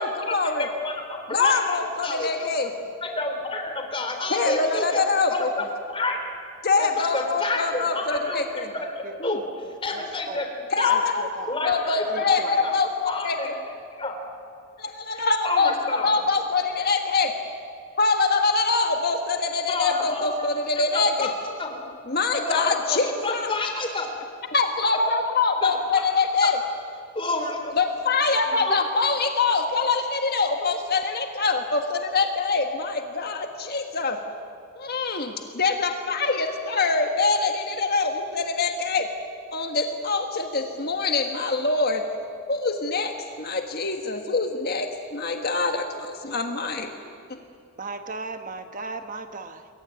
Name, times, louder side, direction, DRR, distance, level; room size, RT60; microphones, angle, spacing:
voice 1, 0.0-0.7 1.3-2.7 4.3-5.5 6.6-8.7 9.2-9.4 10.7-13.6 14.8-15.8 16.0-17.3 18.0-21.3 22.1-23.5 24.5-26.6 27.7-34.2 34.7-39.1 39.5-42.0 42.5-46.9 47.3-47.4, left 4 dB, 45° left, 4 dB, 1.6 m, -24 dB
voice 2, 0.6-2.7 3.0-5.0 5.3-6.2 6.8-8.4 9.2-9.5 9.8-11.0 11.5-12.7 13.1-13.5 14.0-14.2 15.1-16.1 19.7-20.5 20.8-21.3 21.6-21.9 22.5-24.1 25.6-25.7 26.4-26.5 27.1-27.7 28.7-28.8, left 2 dB, 25° left, 4 dB, 3.9 m, -29 dB
voice 3, 9.9-10.4 10.9-11.5 12.1-12.5 47.8-49.7, right 3 dB, 35° right, 7 dB, 1.2 m, -36 dB
27.5 x 22.5 x 9.3 m, 2.5 s
head